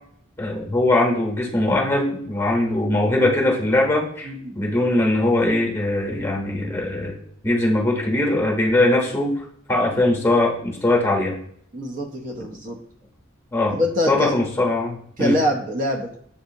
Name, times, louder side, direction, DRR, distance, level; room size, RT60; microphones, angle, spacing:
voice 1, 0.4-4.3 4.6-7.2 7.4-9.3 9.7-11.3 13.5-13.7 14.1-15.4, left 2 dB, 10° left, -1 dB, 0.9 m, -21 dB
voice 2, 4.2-4.6 11.7-12.8 13.7-14.4 15.2-16.2, equal, 40° right, 1 dB, 0.6 m, -24 dB
7.1 x 2.6 x 2.6 m, 0.64 s
head